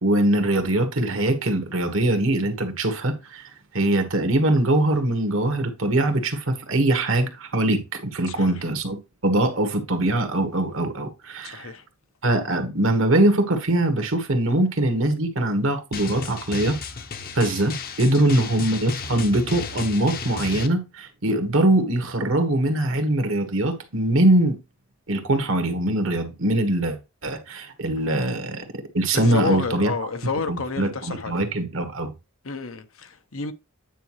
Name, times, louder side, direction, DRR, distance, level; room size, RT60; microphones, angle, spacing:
voice 1, 0.0-3.4 3.7-9.0 9.2-11.7 12.2-16.8 17.3-24.6 25.1-28.6 28.9-29.9 30.5-32.1, right 1 dB, 70° right, 1.5 m, -22 dB
voice 2, 8.3-8.6 11.4-11.8 18.4-18.5 29.1-31.4 32.4-33.5, left 4 dB, 85° left, 1.0 m, -30 dB
Drum, 15.9-20.7, left 4 dB, 45° left, 0.8 m, -34 dB
9.2 x 4.9 x 3.1 m
head